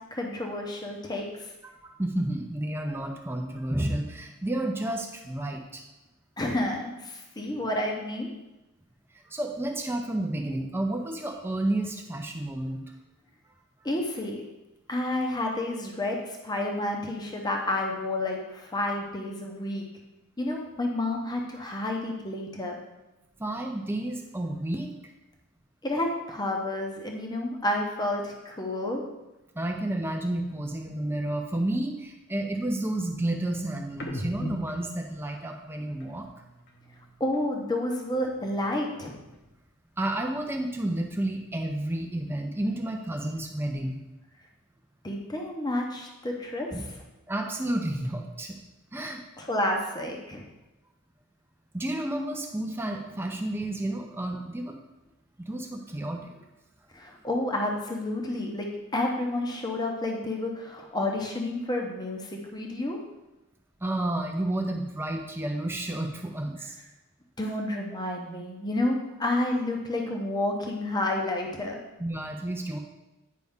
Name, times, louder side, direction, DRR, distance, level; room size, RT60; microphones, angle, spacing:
voice 1, 0.1-1.5 6.4-8.3 13.8-14.4 14.9-19.9 20.4-22.8 25.8-29.0 37.2-39.2 45.0-46.9 49.4-50.5 56.9-63.0 67.4-71.8, left 1 dB, 20° left, 1 dB, 0.8 m, -30 dB
voice 2, 1.8-5.8 9.3-12.8 23.4-24.9 29.5-36.3 40.0-44.0 46.7-46.8 47.3-48.6 48.9-49.2 51.7-54.8 55.4-56.4 63.8-66.8 72.0-72.8, right 1 dB, 10° right, 2 dB, 0.6 m, -31 dB
sound 1, 33.9-37.5 37.8-39.7 39.9-41.8 42.2-44.0, left 1 dB, 45° left, 1.0 m, -44 dB
9.4 x 5.3 x 3.6 m, 1.0 s
head